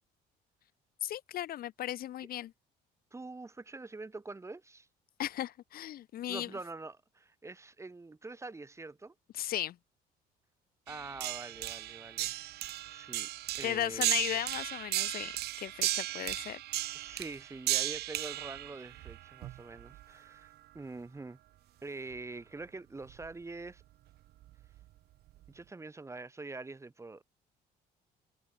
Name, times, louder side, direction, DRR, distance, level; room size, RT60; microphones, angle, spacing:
voice 1, 1.0-2.5 5.2-6.5 9.3-9.8 13.6-15.3 15.6-16.6, left 12 dB, 60° left, 1.4 m, -36 dB
voice 2, 3.1-4.9 6.3-9.1 10.9-12.3 12.8-13.3 13.5-14.1 16.1-16.3 16.9-21.4 21.8-23.8 25.5-27.2, right 3 dB, 15° right, 2.2 m, -45 dB
sound 1, 10.9-20.0 22.1-22.2 23.1-23.3 24.4-24.8 25.5-25.6, right 15 dB, 75° right, 1.7 m, -36 dB
cardioid pair, 110°, 17 cm